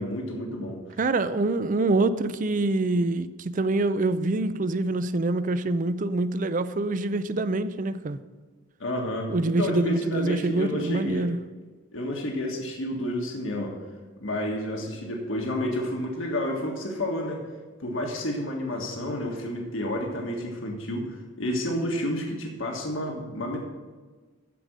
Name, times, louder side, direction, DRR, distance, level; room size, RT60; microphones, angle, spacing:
voice 1, 0.0-0.8 8.8-11.3 11.9-13.7 14.2-17.4 17.8-21.0 21.4-23.6, left 1 dB, 80° left, 0 dB, 1.6 m, -30 dB
voice 2, 1.0-8.2 9.3-11.4, right 2 dB, 40° right, 13 dB, 0.4 m, -25 dB
14.0 x 5.2 x 6.2 m, 1.4 s
head